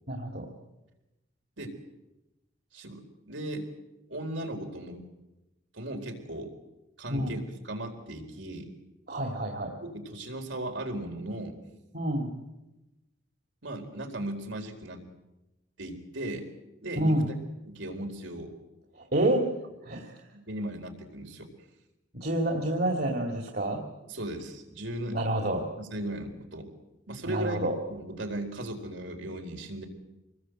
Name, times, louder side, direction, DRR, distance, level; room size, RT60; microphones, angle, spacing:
voice 1, 0.1-0.5 7.1-7.3 9.1-9.7 11.9-12.3 17.0-17.3 19.1-19.5 19.8-20.1 22.2-23.8 25.1-25.7 27.3-27.7, right 1 dB, 50° right, 2 dB, 2.7 m, -28 dB
voice 2, 2.7-3.7 4.1-5.0 5.7-6.5 7.0-8.7 9.8-11.6 13.6-15.0 15.8-16.5 16.8-17.2 17.7-18.5 20.3-21.5 24.1-25.2 25.8-26.7 27.1-29.9, right 1 dB, 75° right, 3 dB, 4.2 m, -37 dB
26.5 x 20.5 x 7.9 m, 0.98 s
head